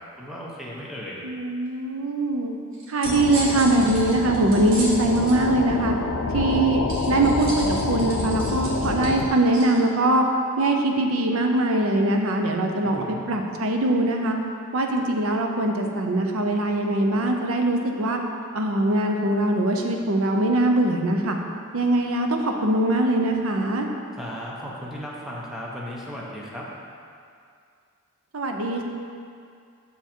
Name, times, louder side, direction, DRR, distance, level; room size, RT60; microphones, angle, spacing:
voice 1, 0.0-1.2 12.8-13.3 24.1-26.7, equal, ahead, -5 dB, 0.9 m, -36 dB
voice 2, 1.2-2.5 2.9-6.0 6.3-10.2 10.6-14.4 14.7-18.2 18.5-21.4 21.7-23.9 28.3-28.8, right 1 dB, 85° right, 3 dB, 0.7 m, -22 dB
sound 1, 2.7-5.4 6.9-9.8, right 1 dB, 70° right, 1.5 m, -35 dB
sound 2, 3.0-9.3, left 3 dB, 85° left, 0.4 m, -27 dB
6.7 x 4.7 x 4.4 m, 2.3 s
head